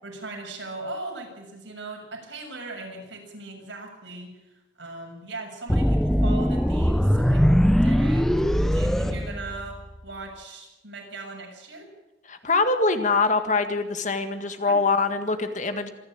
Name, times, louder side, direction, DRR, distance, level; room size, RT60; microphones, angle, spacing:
voice 1, 0.0-4.3 4.8-8.4 8.7-11.9 14.6-14.8, right 2 dB, 85° right, 1 dB, 7.2 m, -39 dB
sound 1, 5.7-10.0, equal, ahead, 0.7 m, -21 dB
voice 2, 12.3-15.9, left 3 dB, 40° left, 8 dB, 1.9 m, -23 dB
26.5 x 11.5 x 8.9 m, 1.0 s
head